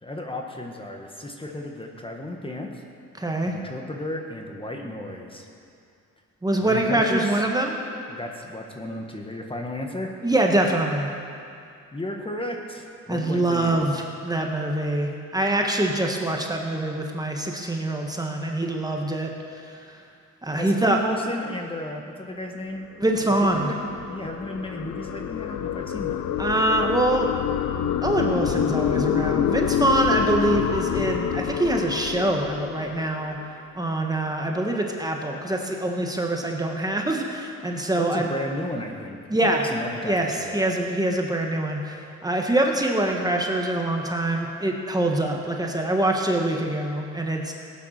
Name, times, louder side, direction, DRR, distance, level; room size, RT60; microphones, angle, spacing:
voice 1, 0.0-2.8 3.4-5.4 6.6-7.5 8.1-10.1 11.9-13.9 20.5-22.9 23.4-26.3 38.0-40.7, left 1 dB, 15° left, 2 dB, 1.5 m, -34 dB
voice 2, 3.2-3.5 6.4-7.7 10.2-11.1 13.1-19.3 20.4-21.0 23.0-23.7 26.4-27.3 28.0-33.4 33.7-38.3 39.3-39.6 40.0-47.5, right 1 dB, 10° right, 1 dB, 1.4 m, -24 dB
sound 1, 22.8-33.4, left 9 dB, 75° left, 0.8 m, -27 dB
16.5 x 9.1 x 6.6 m, 2.4 s
cardioid pair, 90°, 30 cm